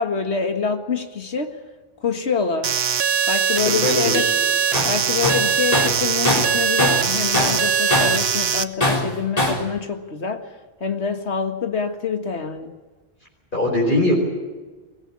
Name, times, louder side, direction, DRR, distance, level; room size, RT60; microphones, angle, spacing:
voice 1, 0.0-1.6 2.0-2.8 3.3-4.3 4.9-10.5 10.8-12.7, left 5 dB, 90° left, 6 dB, 2.0 m, -26 dB
sound 1, 2.6-8.6, right 7 dB, 70° right, 1.2 m, -21 dB
voice 2, 3.8-4.3 13.5-14.1, left 1 dB, 50° left, -3 dB, 5.1 m, -20 dB
Tools, 4.7-5.0 5.2-7.1 7.3-8.2 8.8-9.7, left 1 dB, 35° left, 4.0 m, -21 dB
23.0 x 17.5 x 8.7 m, 1.3 s
omnidirectional pair, 1.1 m